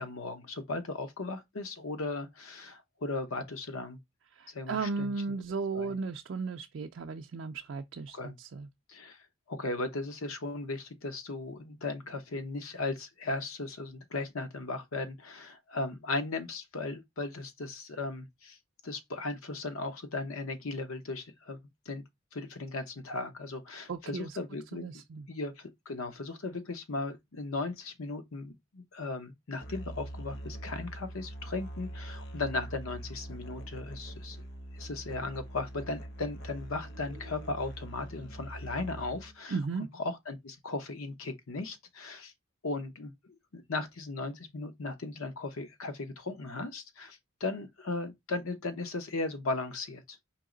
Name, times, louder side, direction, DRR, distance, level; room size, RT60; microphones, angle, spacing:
voice 1, 0.0-4.0 4.5-5.1 5.7-5.9 8.1-8.3 8.9-18.6 18.8-22.0 22.3-24.9 25.3-34.4 34.7-39.5 40.0-42.3 42.6-50.2, left 3 dB, 90° left, 0.9 m, -37 dB
voice 2, 4.3-8.7 23.9-24.4 24.7-25.3 39.5-39.9, right 4 dB, 60° right, 0.4 m, -35 dB
Musical instrument, 29.6-39.4, right 1 dB, 55° left, 0.8 m, -43 dB
4.6 x 3.0 x 3.8 m
head